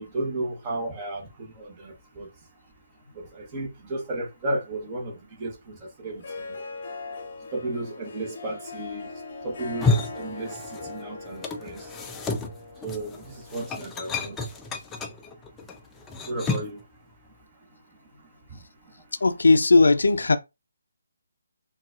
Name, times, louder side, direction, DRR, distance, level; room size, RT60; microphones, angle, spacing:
voice 1, 0.0-2.3 3.2-6.2 7.5-9.1 9.4-9.9 10.1-10.6 10.8-11.9 12.8-14.4 16.3-16.8, right 2 dB, 20° right, 0.9 m, -33 dB
Harp, 6.1-14.7, left 3 dB, 40° left, 0.8 m, -40 dB
sound 1, 9.6-11.0 11.3-16.8, left 3 dB, 10° left, 0.4 m, -30 dB
voice 2, 19.2-20.4, left 3 dB, 75° left, 0.4 m, -17 dB
3.9 x 2.3 x 2.4 m
figure-of-eight pair, 155°, 0 cm